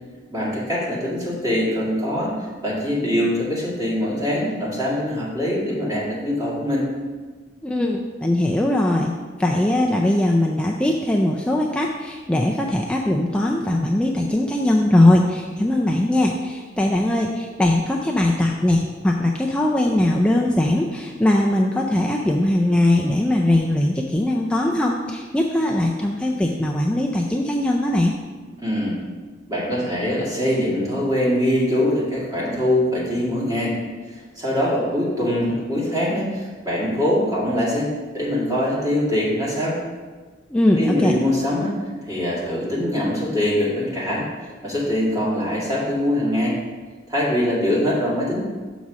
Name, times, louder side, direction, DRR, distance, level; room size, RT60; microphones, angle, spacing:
voice 1, 0.3-6.9 28.6-29.0 29.5-33.7 34.4-39.8 40.8-41.7 42.1-44.3 44.6-46.6 47.1-48.4, left 1 dB, 20° right, -7 dB, 2.1 m, -23 dB
voice 2, 7.6-9.1 9.4-28.1 40.5-41.2, left 1 dB, 5° left, -1 dB, 0.3 m, -20 dB
5.9 x 4.1 x 6.2 m, 1.4 s
head